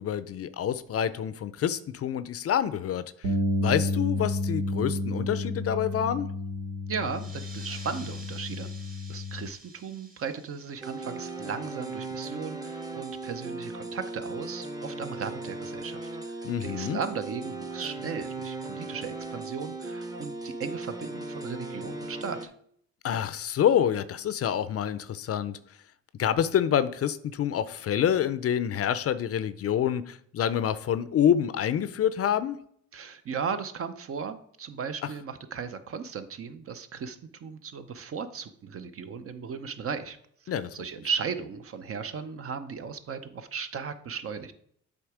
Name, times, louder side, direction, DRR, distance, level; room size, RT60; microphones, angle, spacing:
voice 1, 0.0-3.0 3.6-6.3 16.4-17.0 23.0-25.6 26.2-32.6 40.5-40.7, left 9 dB, 50° left, 14 dB, 0.5 m, -27 dB
Bass guitar, 3.2-9.5, left 2 dB, 85° right, 1.1 m, -31 dB
voice 2, 6.9-8.7 9.1-22.5 32.9-44.5, right 6 dB, 50° right, 10 dB, 0.7 m, -36 dB
sound 1, 7.0-12.2, right 2 dB, 30° right, 1.5 m, -50 dB
sound 2, 10.8-22.5, right 3 dB, 15° right, 0.7 m, -37 dB
8.0 x 3.5 x 4.9 m, 0.66 s
cardioid pair, 90°, 30 cm